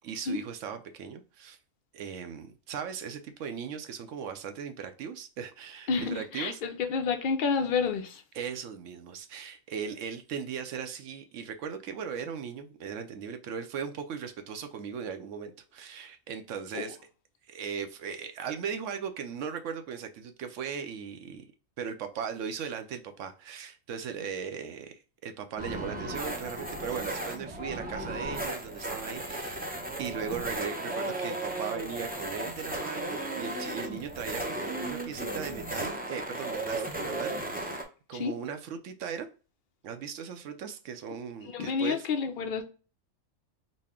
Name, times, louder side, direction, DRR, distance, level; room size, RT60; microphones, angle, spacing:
voice 1, 0.0-1.6 1.9-6.6 8.3-17.0 17.5-21.4 21.8-39.3 39.8-42.1, right 7 dB, 70° right, 0.9 m, -38 dB
voice 2, 5.9-8.2 16.7-16.8 38.1-38.3 41.4-42.6, left 5 dB, 75° left, 0.4 m, -29 dB
sound 1, 25.6-37.8, right 1 dB, 15° right, 0.3 m, -35 dB
4.1 x 2.1 x 3.5 m
omnidirectional pair, 1.4 m